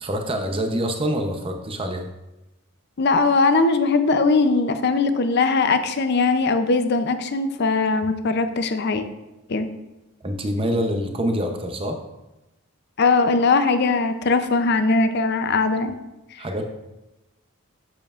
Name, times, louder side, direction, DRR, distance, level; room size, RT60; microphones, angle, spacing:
voice 1, 0.0-2.1 10.2-12.0 16.4-16.7, equal, 25° right, 4 dB, 0.6 m, -25 dB
voice 2, 3.0-9.1 9.5-9.7 13.0-16.0 16.3-16.4, left 3 dB, 50° left, 9 dB, 0.5 m, -20 dB
7.6 x 6.9 x 2.4 m, 0.98 s
head